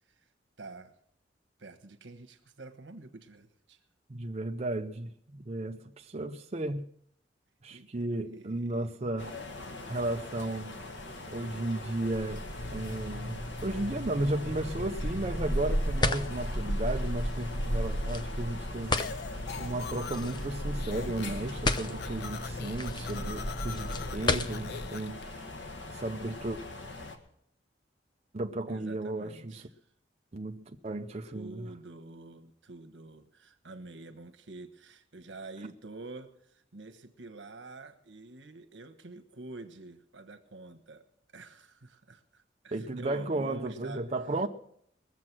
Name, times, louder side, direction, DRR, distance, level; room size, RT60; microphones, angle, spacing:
voice 1, 0.6-1.0 1.6-3.8 7.7-7.9 8.3-8.9 18.8-19.2 28.7-29.7 31.3-41.1 41.3-44.0, right 3 dB, 85° right, 1.3 m, -47 dB
voice 2, 4.1-6.9 7.6-9.4 9.9-10.8 11.3-12.5 12.7-19.0 19.6-25.5 25.9-26.6 28.3-29.7 30.3-31.7 42.7-44.5, right 2 dB, 35° right, 0.7 m, -34 dB
sound 1, 9.2-27.2, equal, 85° left, 1.6 m, -37 dB
sound 2, 12.6-24.9, left 2 dB, 25° left, 0.7 m, -36 dB
sound 3, 19.0-20.5 20.8-21.4 21.7-25.2, left 6 dB, 60° left, 0.4 m, -43 dB
21.0 x 7.5 x 6.1 m
head